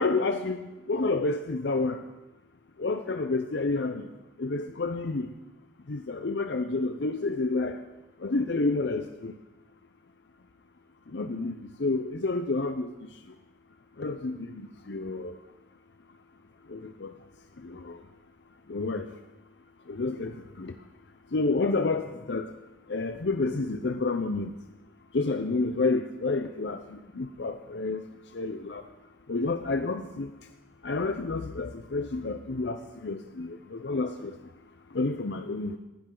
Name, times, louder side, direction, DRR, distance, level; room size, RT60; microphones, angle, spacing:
voice 1, 0.0-2.0 2.8-4.1 4.4-5.3 5.9-7.8 8.2-9.3 11.1-12.9 14.0-15.3 16.7-17.1 17.6-18.0 18.7-19.1 19.9-20.7 21.3-22.5 22.9-24.5 25.1-28.0 28.3-28.8 29.3-30.3 30.8-34.4 34.9-35.8, left 3 dB, 70° left, 7 dB, 0.7 m, -29 dB
19.0 x 12.0 x 3.9 m, 1.0 s
head